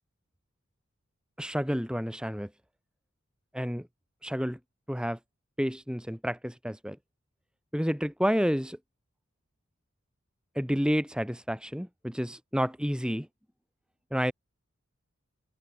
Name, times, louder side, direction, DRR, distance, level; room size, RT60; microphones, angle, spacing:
voice 1, 1.4-2.5 3.5-3.9 4.2-4.6 4.9-5.2 5.6-7.0 7.7-8.8 10.6-13.3 14.1-14.3, equal, 5° right, 3.7 m, -30 dB
head